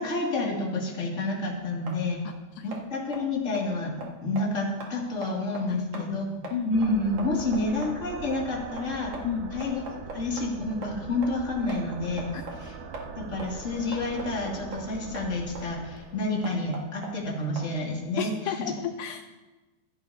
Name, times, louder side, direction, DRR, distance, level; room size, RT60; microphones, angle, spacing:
voice 1, 0.0-2.2 2.6-9.2 9.5-9.8 10.1-12.3 12.6-12.8 13.2-18.6, left 2 dB, 25° left, -2 dB, 2.2 m, -29 dB
sound 1, 1.2-18.0, right 2 dB, 50° right, 2.3 m, -43 dB
voice 2, 2.3-2.7 5.9-6.2 6.5-6.8 9.2-9.6 18.2-19.2, left 8 dB, 85° left, 7 dB, 1.9 m, -32 dB
sound 2, 6.7-17.3, right 5 dB, 85° right, 3.2 m, -42 dB
25.5 x 10.5 x 2.8 m, 1.2 s
omnidirectional pair, 4.4 m